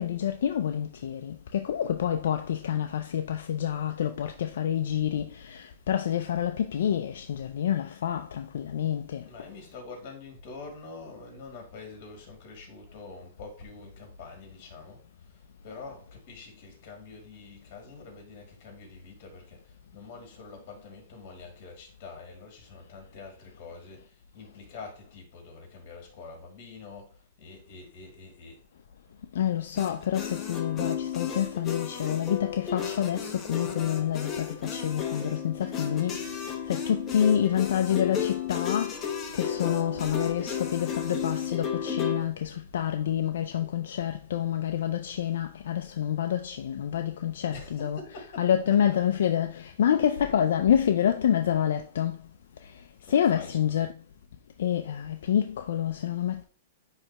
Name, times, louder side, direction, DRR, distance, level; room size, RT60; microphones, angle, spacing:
voice 1, 0.0-9.3 29.3-39.0 39.3-52.2 52.6-52.8 53.1-53.9 54.6-56.4, left 9 dB, 70° left, 0.5 m, -28 dB
voice 2, 9.2-28.6 47.5-48.8 53.0-53.9, left 4 dB, 40° left, 2.5 m, -46 dB
sound 1, 29.8-42.2, left 7 dB, 20° left, 0.9 m, -33 dB
9.6 x 3.3 x 3.0 m
hypercardioid pair, 155°, 0 cm